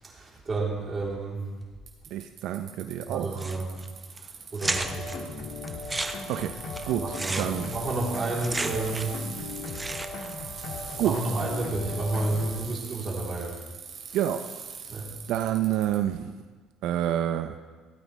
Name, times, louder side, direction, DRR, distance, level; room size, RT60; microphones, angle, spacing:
voice 1, 0.0-1.5 3.1-3.8 4.2-5.3 6.2-6.3 7.0-9.3 10.7-13.6 14.9-15.1, right 2 dB, 35° right, -3 dB, 3.3 m, -31 dB
Bicycle, 1.9-16.0, right 6 dB, 60° right, 2.7 m, -41 dB
voice 2, 2.1-3.4 6.3-6.5 6.9-7.7 11.0-11.2 14.1-14.5 15.3-16.3 16.8-17.6, right 11 dB, 75° right, 7 dB, 0.5 m, -28 dB
sound 1, 3.4-3.9 4.2-4.3 4.6-5.2 5.7-9.2 9.5-10.3, right 2 dB, 15° right, 0.8 m, -33 dB
sound 2, 4.6-12.6, left 3 dB, 65° left, 1.7 m, -38 dB
16.5 x 8.7 x 3.2 m, 1.4 s
supercardioid pair, 80°, 0 cm